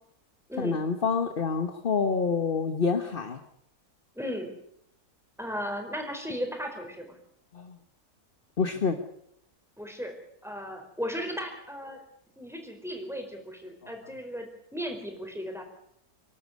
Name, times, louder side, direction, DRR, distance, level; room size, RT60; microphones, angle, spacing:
voice 1, 0.6-3.4 7.5-7.8 8.6-9.0, left 5 dB, 40° left, 8 dB, 1.4 m, -27 dB
voice 2, 4.1-4.5 5.4-7.2 9.8-10.1 10.4-12.0 12.4-15.6, equal, ahead, 3 dB, 4.4 m, -36 dB
25.5 x 12.0 x 9.6 m, 0.73 s
omnidirectional pair, 1.6 m